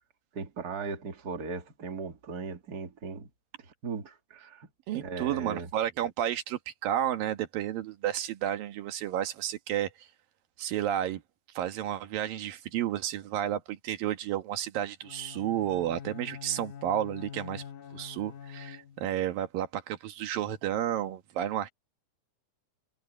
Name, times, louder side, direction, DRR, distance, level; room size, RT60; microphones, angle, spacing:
voice 1, 0.3-3.3 3.8-4.7 5.0-5.7, right 4 dB, 30° right, 2.4 m, -38 dB
voice 2, 4.9-10.1 10.6-11.2 11.5-17.6 17.9-21.7, right 11 dB, 85° right, 3.3 m, -31 dB
Bowed string instrument, 15.0-19.2, left 8 dB, 65° left, 2.7 m, -45 dB
omnidirectional pair, 3.9 m